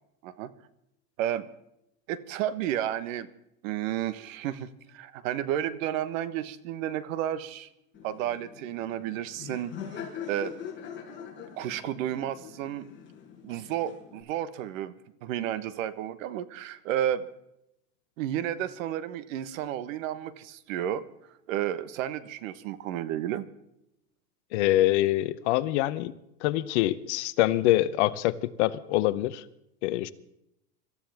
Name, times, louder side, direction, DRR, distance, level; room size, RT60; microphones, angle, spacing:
voice 1, 2.1-3.3 3.6-7.7 8.0-10.0 10.3-10.6 11.6-12.9 13.4-14.9 15.2-17.2 18.2-21.0 21.5-23.4, right 11 dB, 55° right, 1.3 m, -32 dB
Laughter, 7.9-14.2, left 8 dB, 25° left, 4.9 m, -43 dB
voice 2, 24.5-26.1 26.4-29.4 29.8-30.1, left 15 dB, 45° left, 0.9 m, -25 dB
26.0 x 14.5 x 3.5 m
hypercardioid pair, 135°, 48 cm